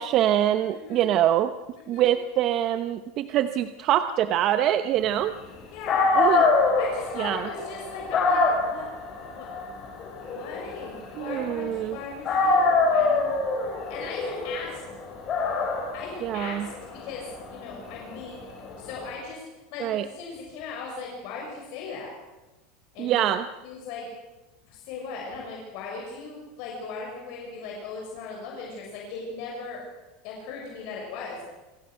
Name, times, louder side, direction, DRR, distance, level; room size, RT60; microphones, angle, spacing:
voice 1, 0.0-1.5 1.9-5.4 6.1-6.5 7.2-7.5 11.2-12.0 16.2-16.7 19.8-20.0 23.0-23.5, right 11 dB, 45° right, 10 dB, 0.9 m, -24 dB
voice 2, 0.7-1.1 1.8-2.1 5.7-6.0 6.8-8.9 9.3-9.5 10.3-13.3 13.9-14.8 15.9-18.4 18.8-19.4 19.7-22.1 22.9-23.3 23.6-24.1 24.6-29.8 30.2-31.4, left 4 dB, 60° left, -1 dB, 6.7 m, -38 dB
Dog, 5.6-5.7 5.9-11.9 12.2-19.0, left 3 dB, 35° left, 6.9 m, -25 dB
27.0 x 17.0 x 6.5 m, 1.1 s
supercardioid pair, 140°, 0 cm